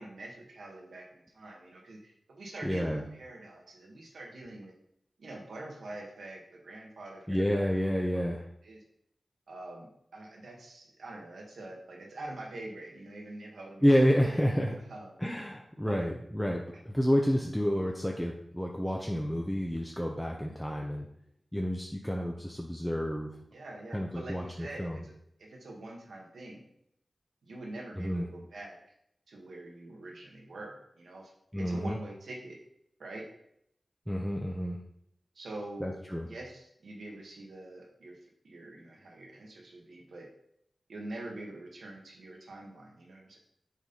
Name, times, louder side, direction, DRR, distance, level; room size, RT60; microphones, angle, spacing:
voice 1, 0.0-4.7 5.2-7.7 8.1-8.8 9.5-13.8 14.9-15.2 15.8-16.1 23.5-25.1 25.4-26.6 27.4-28.8 29.3-32.6 33.0-33.3 35.3-35.9 36.2-38.2 38.4-40.3 40.9-43.4, right 2 dB, 90° right, 0 dB, 1.4 m, -45 dB
voice 2, 2.6-3.0 7.3-8.5 13.8-14.8 15.2-21.1 21.5-23.3 23.9-25.0 27.9-28.3 31.5-32.0 34.1-34.8 35.8-36.3, equal, 5° left, 0 dB, 0.8 m, -29 dB
7.3 x 4.2 x 4.0 m, 0.74 s
cardioid pair, 40°, 0 cm